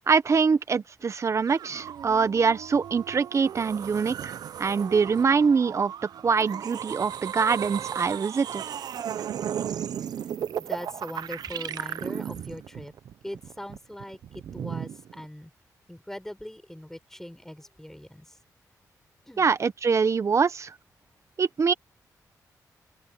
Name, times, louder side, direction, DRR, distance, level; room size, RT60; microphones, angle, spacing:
voice 1, 0.1-5.9 6.2-8.6 19.4-20.7 21.4-21.7, right 5 dB, 45° right, 1.2 m, -24 dB
sound 1, 1.5-15.2, right 9 dB, 80° right, 0.8 m, -35 dB
voice 2, 10.5-12.9 13.2-15.5 15.9-18.4 19.2-19.5, left 1 dB, 5° left, 6.3 m, -41 dB
open air
cardioid pair, 85°, 7 cm